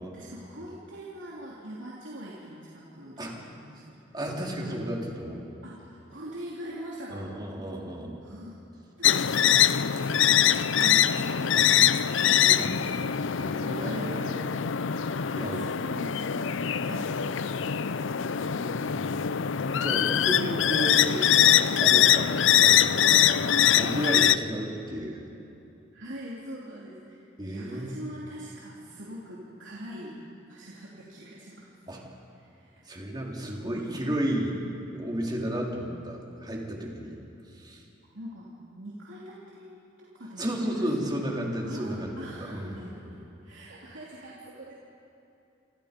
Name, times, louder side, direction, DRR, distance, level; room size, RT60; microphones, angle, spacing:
voice 1, 0.1-4.0 4.6-4.8 5.6-7.3 8.2-8.6 9.0-12.0 12.8-13.0 13.7-14.2 15.1-16.5 16.8-17.1 25.9-31.7 32.3-32.8 38.1-40.9 41.6-44.7, equal, 75° right, -5 dB, 3.1 m, -43 dB
voice 2, 4.1-5.4 7.1-8.1 11.5-11.7 12.2-13.0 13.4-14.7 14.9-15.0 15.3-15.7 17.9-18.0 18.5-21.4 21.8-23.4 23.7-25.2 27.4-28.0 31.9-32.0 32.9-34.6 34.9-37.2 37.5-37.8 40.4-43.1, right 1 dB, 25° right, -1 dB, 3.5 m, -33 dB
sound 1, 9.0-24.4, left 9 dB, 70° left, 0.6 m, -23 dB
27.5 x 26.5 x 5.3 m, 2.9 s
head